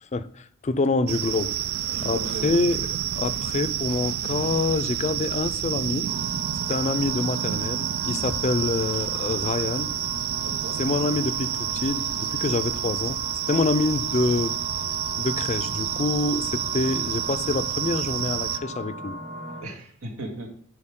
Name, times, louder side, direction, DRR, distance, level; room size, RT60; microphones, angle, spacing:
voice 1, 0.1-1.5 2.0-2.8 3.1-6.1 6.7-9.9 10.8-13.2 13.5-14.6 15.2-19.2, left 3 dB, 35° left, 0.4 m, -26 dB
sound 1, 1.1-18.6, right 11 dB, 75° right, 0.4 m, -29 dB
voice 2, 1.9-2.6 10.4-10.8 19.6-20.5, right 2 dB, 90° right, 2.0 m, -36 dB
sound 2, 6.1-19.6, equal, 35° right, 1.5 m, -38 dB
10.5 x 4.7 x 3.7 m
head